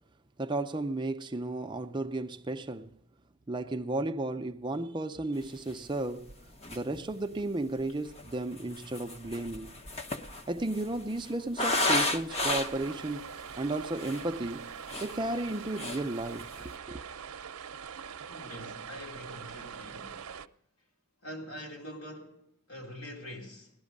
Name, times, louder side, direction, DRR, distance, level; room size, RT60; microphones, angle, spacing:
voice 1, 0.4-3.0 3.5-6.3 6.7-9.7 10.5-13.3 13.6-14.7 15.0-17.0, right 2 dB, 20° right, 0.5 m, -34 dB
sound 1, 5.8-5.9 6.3-6.4 6.6-7.1 7.9-12.9 13.5-13.6 13.9-14.3 14.7-15.5 15.8-16.1 16.4-16.7, left 2 dB, 30° left, 0.8 m, -32 dB
sound 2, 12.3-20.5, right 7 dB, 90° right, 0.6 m, -43 dB
voice 2, 18.3-20.2 21.2-23.7, equal, 75° left, 3.6 m, -44 dB
18.0 x 12.0 x 5.2 m
head